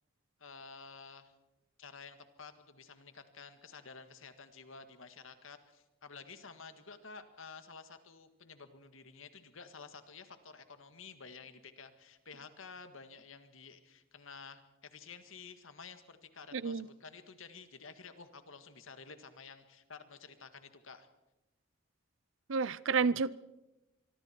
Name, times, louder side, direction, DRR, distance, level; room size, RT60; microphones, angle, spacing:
voice 1, 0.4-1.3 1.8-21.1, left 5 dB, 80° left, 9 dB, 1.9 m, -52 dB
voice 2, 16.5-16.9 22.5-23.4, right 5 dB, 75° right, 20 dB, 0.6 m, -30 dB
24.5 x 23.5 x 4.6 m, 0.98 s
head